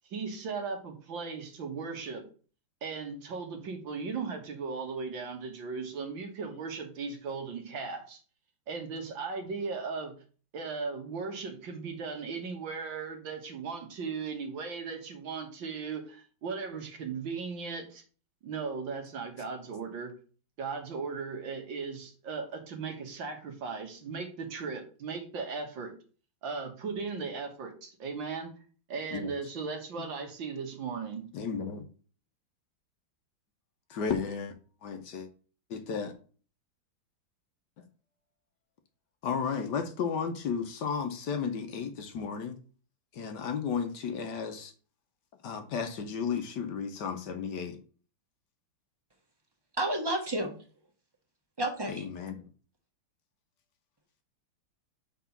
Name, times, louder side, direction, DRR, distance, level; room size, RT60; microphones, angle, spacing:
voice 1, 0.1-2.2 2.8-8.2 8.7-10.2 10.5-18.0 18.4-20.1 20.6-25.9 26.4-28.5 28.9-31.3, right 5 dB, 70° right, 4 dB, 2.1 m, -37 dB
voice 2, 31.3-31.9 33.9-35.3 35.7-36.1 37.8-37.9 39.2-42.6 43.1-44.7 45.4-47.8 51.9-52.5, left 6 dB, 65° left, 7 dB, 1.4 m, -34 dB
voice 3, 49.8-50.5 51.6-52.0, right 1 dB, 15° right, 2 dB, 1.3 m, -30 dB
5.9 x 4.6 x 5.8 m, 0.39 s
omnidirectional pair, 2.1 m